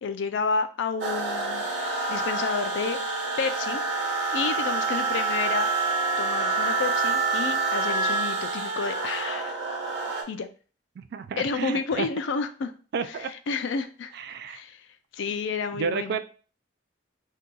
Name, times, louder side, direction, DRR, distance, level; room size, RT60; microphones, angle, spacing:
voice 1, 0.0-3.1 3.4-5.7 6.2-9.6 10.3-10.5 11.4-12.7 13.5-14.1 14.5-14.8 15.1-16.2, left 5 dB, 70° left, 9 dB, 0.4 m, -30 dB
sound 1, 1.0-10.2, right 3 dB, 75° right, 0.7 m, -27 dB
voice 2, 11.0-12.1 12.9-13.3 14.1-14.6 15.7-16.2, right 5 dB, 55° right, 10 dB, 0.3 m, -31 dB
2.7 x 2.3 x 3.7 m, 0.39 s
head